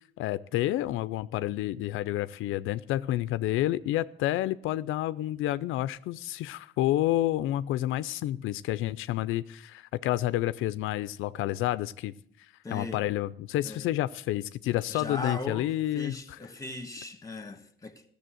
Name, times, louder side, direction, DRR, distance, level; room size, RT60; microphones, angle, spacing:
voice 1, 0.2-16.4, left 14 dB, 85° left, 0.4 m, -29 dB
voice 2, 12.6-13.0 13.6-13.9 14.9-15.7 15.9-18.0, left 3 dB, 15° left, 1.5 m, -38 dB
13.5 x 6.8 x 7.7 m
cardioid pair, 90°, 20 cm